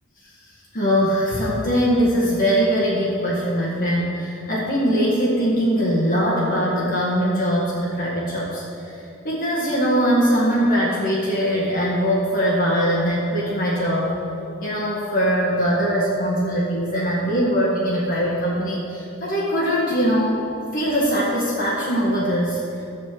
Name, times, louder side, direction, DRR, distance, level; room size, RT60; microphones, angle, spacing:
voice 1, 0.7-8.6 9.2-14.1 14.6-20.4 20.7-22.6, equal, 45° left, -6 dB, 1.7 m, -21 dB
13.0 x 4.4 x 7.7 m, 2.7 s
head